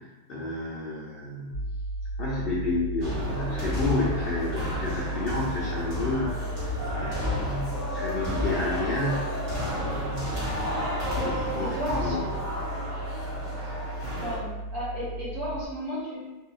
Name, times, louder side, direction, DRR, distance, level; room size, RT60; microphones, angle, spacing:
voice 1, 0.3-1.7 2.2-9.3 9.7-10.4 11.0-11.8 12.0-12.3, left 2 dB, 70° left, -5 dB, 0.5 m, -31 dB
sound 1, 1.5-15.6, right 2 dB, 90° right, 1.2 m, -35 dB
sound 2, 3.0-14.4, left 1 dB, 35° right, 1.4 m, -32 dB
voice 2, 11.7-12.2 14.2-16.2, equal, 60° right, -8 dB, 1.5 m, -33 dB
3.7 x 2.7 x 2.4 m, 1.1 s
omnidirectional pair, 1.6 m